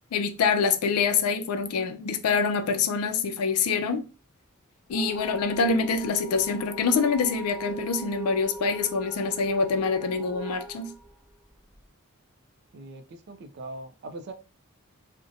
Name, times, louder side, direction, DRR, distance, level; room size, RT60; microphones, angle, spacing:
voice 1, 0.1-4.0 4.9-10.9, left 5 dB, 85° left, 0.4 m, -25 dB
sound 1, 4.9-11.8, right 2 dB, 5° right, 0.6 m, -40 dB
voice 2, 12.7-14.3, right 2 dB, 50° right, 0.4 m, -41 dB
2.7 x 2.1 x 2.5 m
head